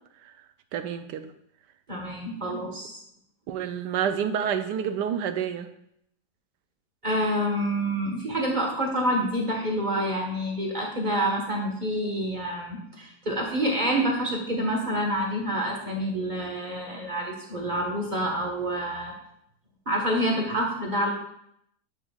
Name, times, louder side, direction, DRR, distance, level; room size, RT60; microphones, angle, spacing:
voice 1, 0.7-1.3 2.5-2.6 3.5-5.7, right 8 dB, 90° right, 9 dB, 1.3 m, -28 dB
voice 2, 1.9-3.0 7.0-19.1 19.9-21.1, equal, 30° right, -1 dB, 1.3 m, -27 dB
9.7 x 6.8 x 2.4 m, 0.74 s
omnidirectional pair, 1.8 m